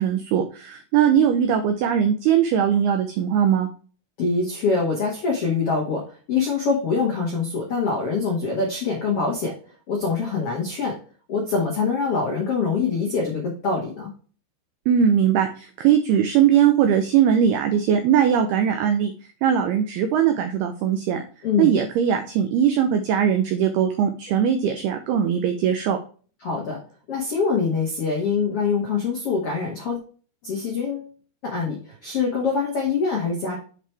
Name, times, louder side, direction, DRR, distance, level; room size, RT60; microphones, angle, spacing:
voice 1, 0.0-3.7 14.9-19.1 19.4-21.2 21.6-26.0, right 8 dB, 85° right, 6 dB, 2.2 m, -20 dB
voice 2, 4.2-9.6 9.9-11.0 11.3-14.1 21.4-21.7 26.4-26.8 27.1-30.0 30.4-31.1 31.4-33.5, left 4 dB, 85° left, -2 dB, 1.3 m, -24 dB
8.2 x 4.6 x 3.3 m, 0.39 s
omnidirectional pair, 5.5 m